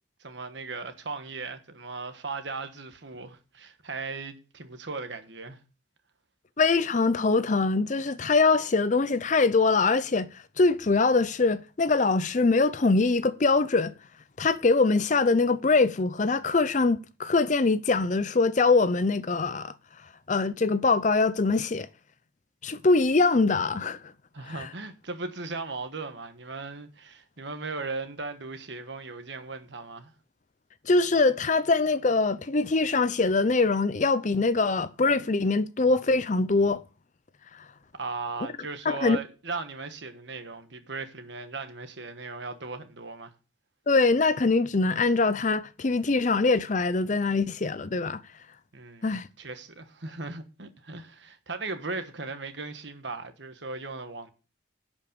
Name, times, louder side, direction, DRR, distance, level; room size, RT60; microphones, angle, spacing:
voice 1, 0.2-5.6 24.3-30.1 37.9-43.3 48.7-54.3, right 3 dB, 65° right, 1.4 m, -37 dB
voice 2, 6.6-10.3 10.6-13.9 14.4-19.7 20.3-21.9 22.6-24.0 24.5-24.7 30.9-36.8 38.8-39.2 43.9-48.2 49.0-49.3, left 3 dB, 40° left, 0.5 m, -23 dB
11.0 x 5.3 x 6.8 m
head